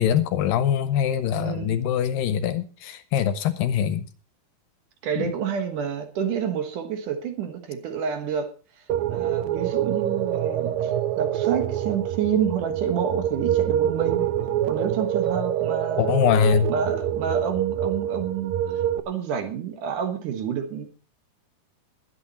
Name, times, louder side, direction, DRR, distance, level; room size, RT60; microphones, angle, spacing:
voice 1, 0.0-4.0 5.2-5.3 16.0-16.7, left 9 dB, 75° left, 13 dB, 2.4 m, -23 dB
voice 2, 1.4-1.7 5.0-8.5 9.1-14.2 14.7-16.3 16.7-20.9, right 7 dB, 65° right, 7 dB, 2.7 m, -28 dB
sound 1, 8.9-19.0, right 11 dB, 80° right, 1.7 m, -26 dB
20.5 x 8.4 x 4.2 m, 0.36 s
omnidirectional pair, 4.3 m